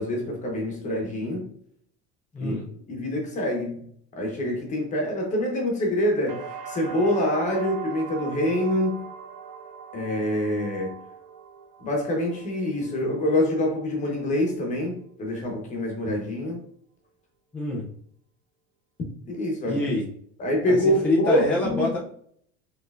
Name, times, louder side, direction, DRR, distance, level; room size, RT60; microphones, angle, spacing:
voice 1, 0.0-1.5 2.4-2.5 2.9-3.9 4.2-9.0 9.9-10.9 11.8-16.6 19.3-19.8 20.4-21.9, left 1 dB, 25° left, 1.0 m, -26 dB
voice 2, 2.3-2.6 17.5-17.9 19.7-20.1 20.7-20.8 21.0-22.0, left 1 dB, 5° left, 0.3 m, -25 dB
sound 1, 6.3-14.2 14.6-15.2, right 7 dB, 65° right, 0.8 m, -41 dB
4.4 x 3.1 x 2.4 m
cardioid pair, 170°, 30 cm